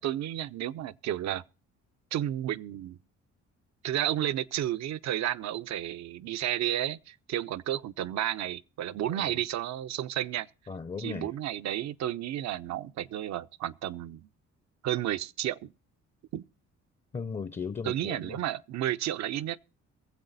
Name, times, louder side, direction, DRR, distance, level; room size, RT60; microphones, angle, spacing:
voice 1, 0.0-1.4 2.1-3.0 3.8-10.5 11.0-14.3 14.8-15.7 16.3-16.4 17.8-19.6, right 12 dB, 65° right, 0.5 m, -32 dB
voice 2, 9.0-9.4 10.7-11.3 17.1-18.4, left 5 dB, 20° left, 0.5 m, -37 dB
22.5 x 7.6 x 3.9 m
cardioid pair, 90°, 30 cm